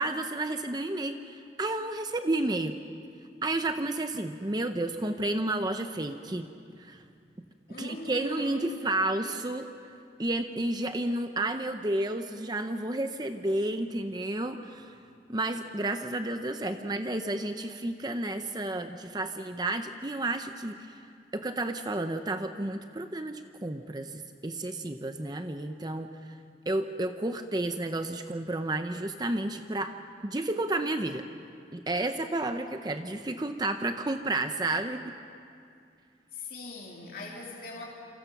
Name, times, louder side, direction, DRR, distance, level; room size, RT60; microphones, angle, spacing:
voice 1, 0.0-2.7 3.4-6.5 6.8-7.0 7.8-9.6 10.2-15.0 15.3-21.0 21.3-26.4 26.7-29.9 30.2-31.2 31.7-35.0, right 2 dB, 25° right, 7 dB, 0.7 m, -31 dB
voice 2, 7.7-8.8 36.3-37.8, left 3 dB, 55° left, -3 dB, 3.0 m, -41 dB
28.5 x 27.0 x 6.0 m, 2.4 s
head